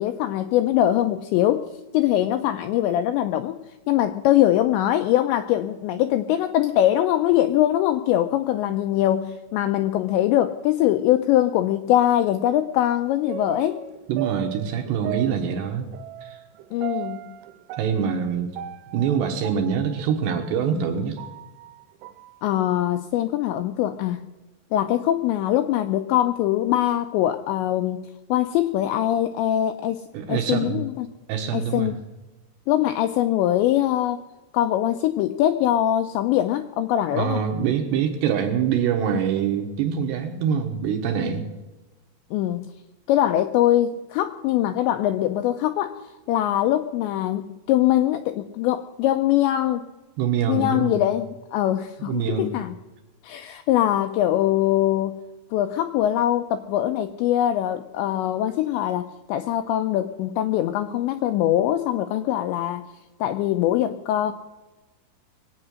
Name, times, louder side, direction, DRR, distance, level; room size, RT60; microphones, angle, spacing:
voice 1, 0.0-1.7 1.9-3.6 3.9-13.8 16.7-17.4 22.4-24.3 24.7-28.0 28.3-30.0 30.3-31.1 31.5-31.9 32.7-34.2 34.5-37.4 42.3-42.7 43.1-49.8 50.5-52.7 53.2-55.2 55.5-62.9 63.2-64.3, left 12 dB, 85° left, 8 dB, 2.5 m, -22 dB
sound 1, 13.3-20.5 21.0-22.3 22.7-22.8, right 13 dB, 90° right, 3.3 m, -37 dB
voice 2, 14.1-15.9 16.2-16.4 17.8-18.5 18.9-21.2 30.1-30.8 31.3-31.9 37.1-41.4 50.2-51.0 52.1-52.5, right 7 dB, 75° right, 4 dB, 2.8 m, -24 dB
21.5 x 8.8 x 6.3 m, 1.1 s
omnidirectional pair, 5.7 m